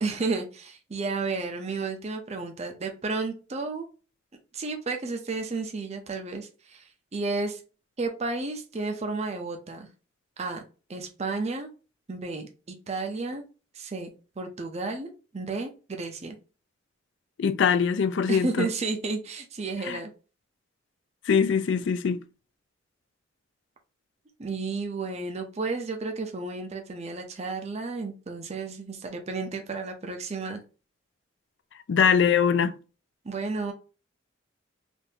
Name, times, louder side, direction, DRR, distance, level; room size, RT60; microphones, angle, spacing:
voice 1, 0.0-3.9 4.5-7.6 8.0-9.9 10.4-10.6 10.9-11.7 12.1-13.4 13.7-14.1 14.4-15.1 15.3-16.4 18.3-20.1 24.4-30.6 33.2-33.7, right 3 dB, 35° right, 0.5 m, -32 dB
voice 2, 17.4-18.7 19.8-20.0 21.3-22.2 31.9-32.7, left 6 dB, 65° left, 0.4 m, -22 dB
3.4 x 2.6 x 2.7 m
head